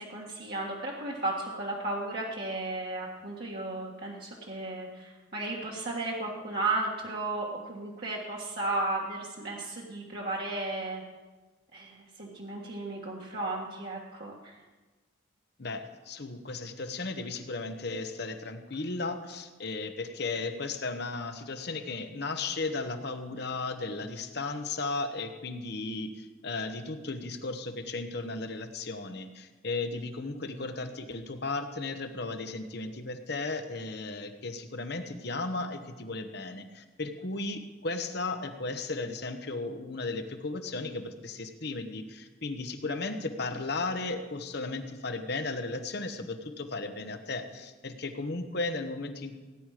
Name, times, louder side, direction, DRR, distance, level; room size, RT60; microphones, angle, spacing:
voice 1, 0.0-11.0 11.7-14.6, right 2 dB, 55° right, -4 dB, 1.7 m, -34 dB
voice 2, 15.6-49.4, left 3 dB, 55° left, 7 dB, 1.1 m, -35 dB
17.5 x 10.0 x 5.0 m, 1.2 s
head